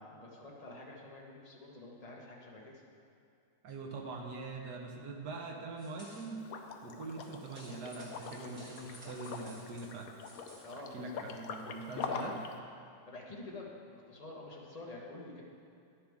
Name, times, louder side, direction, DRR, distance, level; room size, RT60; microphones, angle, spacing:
voice 1, 0.0-2.8 10.6-11.2 11.9-12.3 13.1-15.4, left 2 dB, 25° left, -3 dB, 1.3 m, -48 dB
voice 2, 3.6-6.4 6.8-10.1 10.9-12.4, right 3 dB, 75° right, 1 dB, 1.7 m, -43 dB
sound 1, 5.8-6.3 7.0-10.7, equal, 35° right, 2.7 m, -56 dB
Liquid, 6.4-12.5, left 5 dB, 65° left, 1.0 m, -43 dB
10.5 x 10.5 x 3.6 m, 2.5 s
omnidirectional pair, 1.8 m